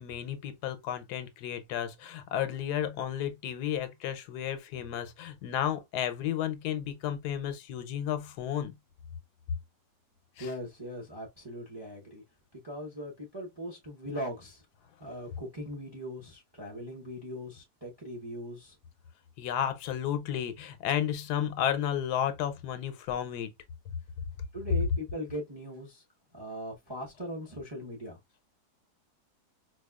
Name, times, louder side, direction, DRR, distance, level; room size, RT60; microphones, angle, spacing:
voice 1, 0.0-8.7 10.4-10.5 19.4-23.5, left 10 dB, 80° left, 1.2 m, -32 dB
voice 2, 10.4-12.2 12.5-14.6 15.0-18.8 24.5-26.0 26.3-28.2, equal, 25° right, 0.6 m, -40 dB
4.6 x 2.3 x 2.3 m
omnidirectional pair, 1.7 m